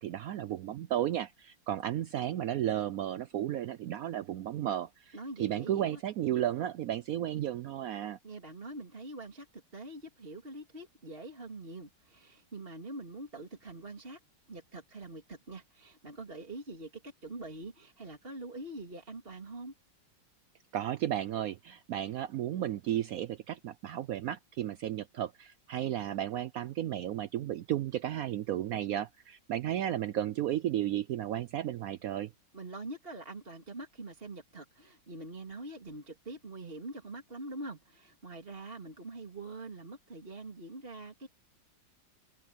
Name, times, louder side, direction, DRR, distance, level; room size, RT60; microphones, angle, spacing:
voice 1, 0.0-8.2 20.7-32.3, right 11 dB, 75° right, 0.8 m, -33 dB
voice 2, 5.1-6.0 8.2-9.5 9.7-14.2 14.5-19.7 32.5-41.3, right 2 dB, 30° right, 3.2 m, -44 dB
omnidirectional pair, 2.0 m